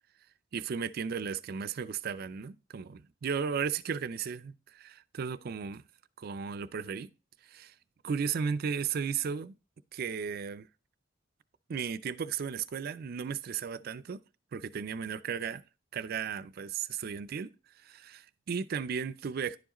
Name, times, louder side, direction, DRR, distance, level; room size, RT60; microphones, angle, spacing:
voice 1, 0.5-5.8 6.2-7.1 7.4-7.7 8.0-9.6 9.9-10.7 11.7-14.2 14.5-15.6 15.9-19.6, right 6 dB, 50° right, 0.4 m, -35 dB
10.5 x 4.7 x 2.9 m
head